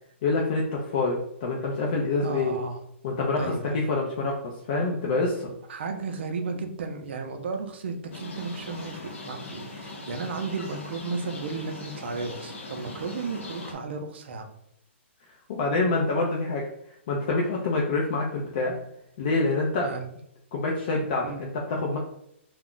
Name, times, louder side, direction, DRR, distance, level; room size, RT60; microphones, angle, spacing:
voice 1, 0.2-2.6 3.0-5.5 15.5-16.7 17.1-18.7 19.2-19.9 20.5-22.0, left 3 dB, 40° left, -2 dB, 0.5 m, -26 dB
voice 2, 2.2-2.8 3.4-3.9 5.7-14.5 19.8-20.1 21.2-21.5, right 4 dB, 60° right, 5 dB, 0.5 m, -34 dB
sound 1, 8.1-13.7, left 2 dB, 75° left, 0.8 m, -40 dB
2.3 x 2.0 x 3.7 m, 0.75 s
hypercardioid pair, 160°, 7 cm